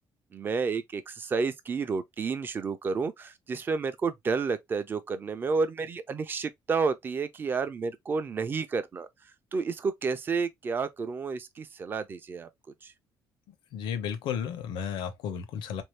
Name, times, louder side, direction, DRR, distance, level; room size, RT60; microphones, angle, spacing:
voice 1, 0.3-9.1 9.5-12.5 12.8-12.9, right 4 dB, 25° right, 0.5 m, -30 dB
voice 2, 13.7-15.8, left 8 dB, 90° left, 0.9 m, -33 dB
3.9 x 2.7 x 3.2 m
cardioid pair, 160°, 8 cm